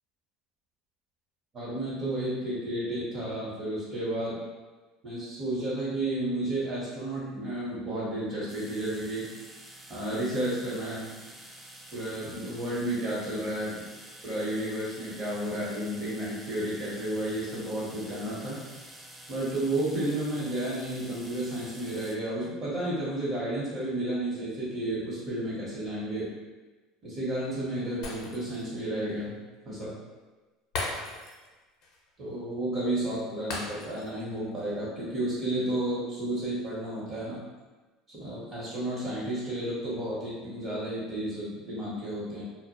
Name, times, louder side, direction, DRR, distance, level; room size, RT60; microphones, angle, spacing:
voice 1, 1.5-4.3 5.0-9.3 9.9-11.1 11.9-13.8 14.2-18.6 19.3-26.3 27.0-29.3 29.6-29.9 32.2-37.4 38.1-42.4, right 1 dB, 40° right, -9 dB, 0.8 m, -32 dB
sound 1, 8.5-22.2, right 1 dB, 10° right, 0.3 m, -48 dB
Shatter, 28.0-28.7 29.1-29.2 30.7-31.5 31.8-32.0 33.5-34.2 34.6-34.7, left 2 dB, 60° left, 0.6 m, -37 dB
2.1 x 2.0 x 2.9 m, 1.2 s
hypercardioid pair, 85°, 0 cm